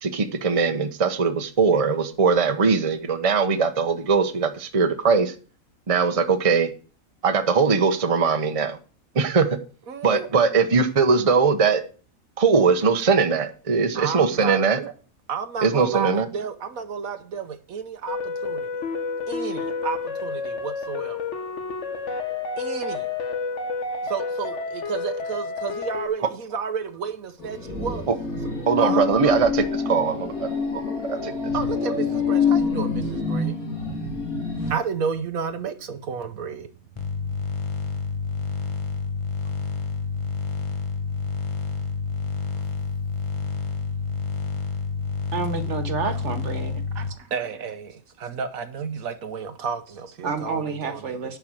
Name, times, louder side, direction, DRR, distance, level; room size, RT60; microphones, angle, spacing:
voice 1, 0.0-5.3 5.9-6.7 7.2-8.8 9.1-9.6 10.0-11.8 12.4-14.8 15.6-16.2 28.7-31.5, right 5 dB, 30° right, 0.9 m, -21 dB
voice 2, 9.9-10.3 13.9-14.9 15.3-18.8 19.3-21.4 22.6-23.1 24.0-28.1 28.8-29.1 31.5-33.6 34.7-36.7 46.9-51.3, right 6 dB, 75° right, 1.3 m, -32 dB
sound 1, 18.1-26.1, left 4 dB, 55° left, 1.6 m, -30 dB
sound 2, 27.4-34.7, left 5 dB, 85° left, 3.2 m, -26 dB
sound 3, 37.0-47.1, left 5 dB, 25° left, 1.2 m, -29 dB
voice 3, 45.3-46.8 50.2-51.4, right 4 dB, 55° right, 1.6 m, -29 dB
10.5 x 4.7 x 7.5 m
omnidirectional pair, 1.5 m